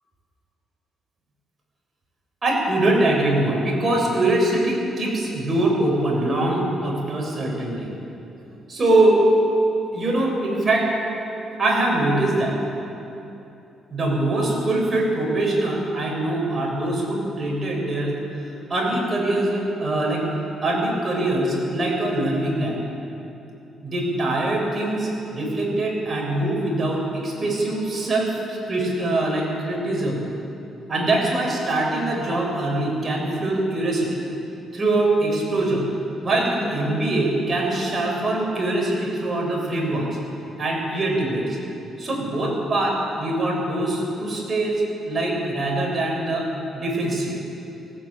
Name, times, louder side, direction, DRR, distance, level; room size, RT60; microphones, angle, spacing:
voice 1, 2.4-7.9 8.7-9.2 9.9-10.9 11.6-12.5 13.9-18.2 18.7-20.2 20.6-22.8 23.8-30.2 30.9-34.2 34.7-35.9 36.2-40.1 40.6-41.6 42.0-44.7 45.1-46.5 46.7-47.4, right 2 dB, 35° right, -1 dB, 6.6 m, -23 dB
18.5 x 16.0 x 8.8 m, 2.9 s
cardioid pair, 90°, 0 cm